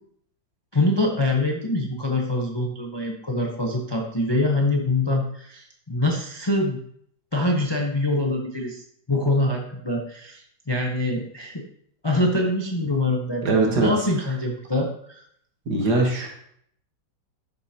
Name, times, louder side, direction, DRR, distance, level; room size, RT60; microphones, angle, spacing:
voice 1, 0.7-6.8 7.3-11.6 12.0-15.2, left 2 dB, 25° left, 0 dB, 0.5 m, -24 dB
voice 2, 13.4-13.9 15.7-16.3, right 3 dB, 60° right, 0 dB, 2.1 m, -21 dB
11.5 x 6.7 x 2.9 m, 0.69 s
omnidirectional pair, 2.0 m